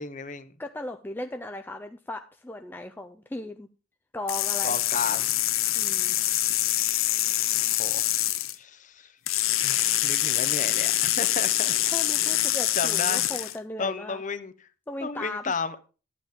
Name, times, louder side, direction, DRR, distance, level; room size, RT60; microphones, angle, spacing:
voice 1, 0.0-0.5 4.6-5.3 7.7-8.2 8.6-9.1 9.6-11.7 12.7-13.3 13.8-14.7 15.0-15.8, left 4 dB, 35° left, 0.7 m, -33 dB
voice 2, 0.6-3.7 4.1-4.8 5.8-6.2 11.8-14.2 14.9-15.5, left 1 dB, 10° left, 0.4 m, -37 dB
sound 1, 4.3-8.5 9.3-13.6, left 14 dB, 80° left, 0.7 m, -25 dB
11.5 x 9.0 x 3.6 m
head